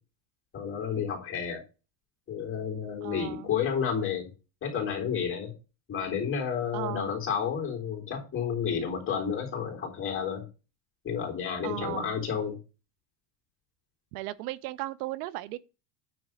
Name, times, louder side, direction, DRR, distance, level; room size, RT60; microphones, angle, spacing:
voice 1, 0.5-1.6 2.3-4.3 4.6-5.5 5.9-10.5 11.0-12.6, left 7 dB, 25° left, 3.8 m, -31 dB
voice 2, 3.0-3.5 6.7-7.1 11.6-12.2 14.1-15.6, right 16 dB, 75° right, 0.8 m, -36 dB
9.3 x 3.6 x 6.3 m
supercardioid pair, 125°, 46 cm